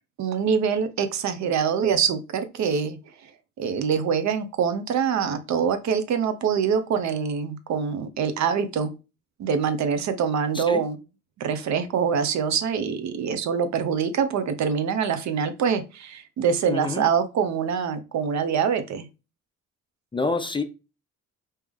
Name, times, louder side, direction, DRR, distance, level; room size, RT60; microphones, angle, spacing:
voice 1, 0.2-3.0 3.6-8.9 9.4-11.0 11.4-19.1, right 6 dB, 65° right, 0.7 m, -24 dB
voice 2, 16.7-17.0 20.1-20.6, left 3 dB, 15° left, 0.4 m, -27 dB
3.5 x 2.8 x 3.4 m
cardioid pair, 90°, 30 cm